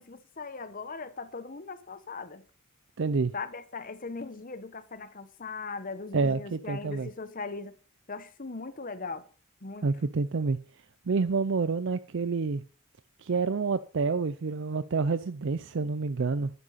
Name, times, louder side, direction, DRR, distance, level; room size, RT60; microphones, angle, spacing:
voice 1, 0.0-2.4 3.3-7.8 8.1-9.2 9.6-9.9, left 4 dB, 40° left, 1.0 m, -39 dB
voice 2, 3.0-3.3 6.1-7.1 9.8-10.6 11.1-12.6 13.2-16.5, right 4 dB, 55° right, 0.5 m, -28 dB
11.0 x 9.9 x 4.1 m
head